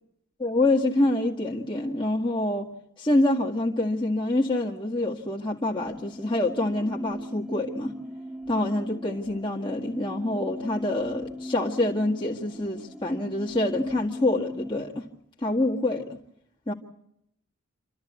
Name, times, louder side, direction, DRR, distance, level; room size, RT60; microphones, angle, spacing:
voice 1, 0.4-2.7 3.0-8.0 8.5-15.1 15.4-16.2 16.7-16.8, left 1 dB, 25° left, -3 dB, 1.9 m, -26 dB
sound 1, 5.8-14.7, left 1 dB, ahead, 1.1 m, -39 dB
28.5 x 13.5 x 8.3 m, 0.78 s
head